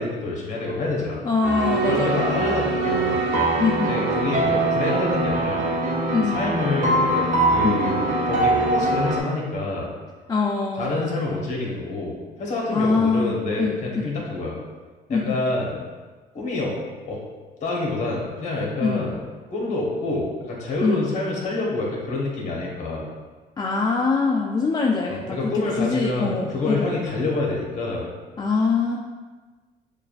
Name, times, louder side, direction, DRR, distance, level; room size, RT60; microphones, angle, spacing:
voice 1, 0.0-1.2 1.8-3.3 3.9-5.7 6.2-9.9 10.8-14.6 15.1-15.8 16.3-16.8 17.0-17.2 17.6-19.2 19.5-23.1 25.1-28.1, left 2 dB, 45° left, -3 dB, 1.2 m, -27 dB
voice 2, 1.2-2.4 3.6-3.9 6.1-6.4 7.6-7.8 10.3-11.0 12.7-14.1 15.1-15.4 18.8-19.1 20.8-21.0 23.6-25.4 25.8-27.0 28.4-29.0, left 4 dB, 25° left, -2 dB, 0.4 m, -23 dB
sound 1, 1.4-9.2, right 2 dB, 50° right, 0.9 m, -22 dB
6.5 x 2.4 x 2.5 m, 1.3 s
cardioid pair, 110°, 17 cm